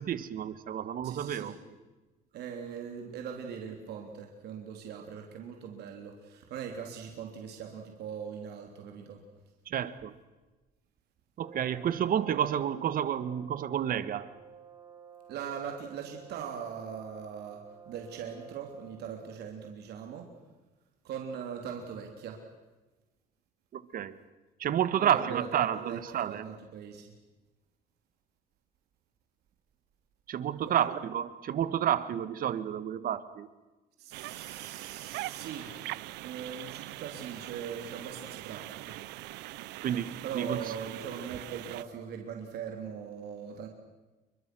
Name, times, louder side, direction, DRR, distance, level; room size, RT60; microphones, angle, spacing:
voice 1, 0.0-1.5 9.7-10.1 11.4-14.3 23.7-24.2 24.6-26.4 30.3-33.5 39.8-40.6, right 10 dB, 55° right, 13 dB, 1.7 m, -30 dB
voice 2, 1.0-1.6 2.3-9.2 15.3-20.3 21.0-22.4 25.0-27.1 30.7-30.9 34.0-35.7 36.1-39.0 40.2-43.7, right 7 dB, 75° right, 3 dB, 3.4 m, -40 dB
Brass instrument, 11.4-19.2, right 7 dB, 25° right, 3.0 m, -53 dB
sound 1, 34.1-41.8, right 18 dB, 90° right, 0.7 m, -42 dB
30.0 x 23.5 x 6.3 m, 1.2 s
cardioid pair, 110°, 17 cm